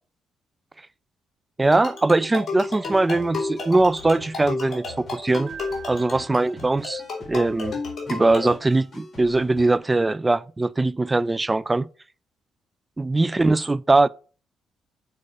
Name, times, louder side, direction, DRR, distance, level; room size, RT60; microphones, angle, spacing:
sound 1, 1.6-8.5, left 3 dB, 50° left, 2.7 m, -32 dB
voice 1, 1.6-5.5 5.9-7.7 8.1-11.9 13.0-14.1, right 2 dB, 20° right, 0.4 m, -21 dB
sound 2, 2.9-9.8, left 1 dB, 30° left, 3.7 m, -45 dB
Keyboard (musical), 5.5-7.3, right 7 dB, 65° right, 1.5 m, -44 dB
6.8 x 4.8 x 5.3 m
cardioid pair, 90°, 0 cm